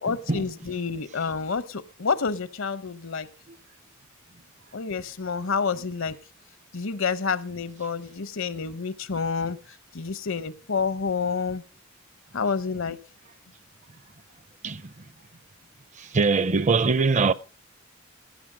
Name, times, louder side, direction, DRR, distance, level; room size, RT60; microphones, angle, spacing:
voice 1, 0.0-3.3 4.7-6.2 6.7-9.6 9.9-11.6 12.3-13.0, left 5 dB, 70° left, 0.8 m, -28 dB
voice 2, 16.0-17.3, right 4 dB, 35° right, 0.6 m, -22 dB
16.5 x 9.4 x 5.0 m
head